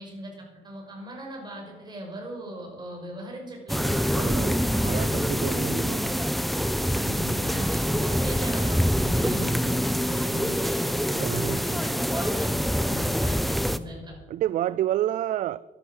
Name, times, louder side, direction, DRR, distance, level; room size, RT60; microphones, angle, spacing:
voice 1, 0.0-5.4 6.9-14.1, equal, 25° right, 5.7 m, -39 dB
sound 1, 3.7-13.8, equal, ahead, 0.6 m, -25 dB
voice 2, 3.9-4.6 4.8-6.4 11.1-11.8 14.3-15.6, right 12 dB, 50° right, 0.4 m, -30 dB
13.0 x 11.0 x 6.4 m
cardioid pair, 110°, 17 cm